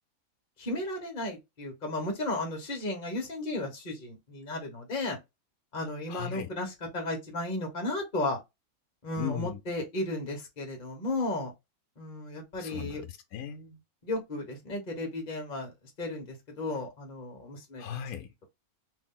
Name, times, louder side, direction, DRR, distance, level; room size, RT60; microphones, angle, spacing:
voice 1, 0.6-5.2 5.7-8.4 9.0-11.5 12.0-13.0 14.0-18.0, left 2 dB, 35° left, 1.2 m, -34 dB
voice 2, 6.1-6.5 9.2-9.6 12.6-13.8 17.8-18.3, left 9 dB, 80° left, 1.1 m, -37 dB
3.2 x 2.6 x 3.7 m
omnidirectional pair, 1.5 m